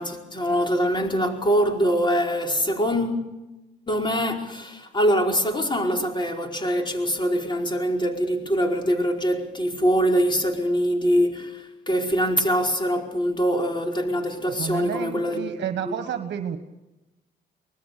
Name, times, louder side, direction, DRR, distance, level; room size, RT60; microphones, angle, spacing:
voice 1, 0.0-3.2 3.9-15.5 15.8-16.1, equal, 25° left, 4.8 m, -23 dB
voice 2, 14.5-16.6, right 9 dB, 65° right, 1.6 m, -30 dB
24.5 x 20.0 x 6.8 m
cardioid pair, 90°, 20 cm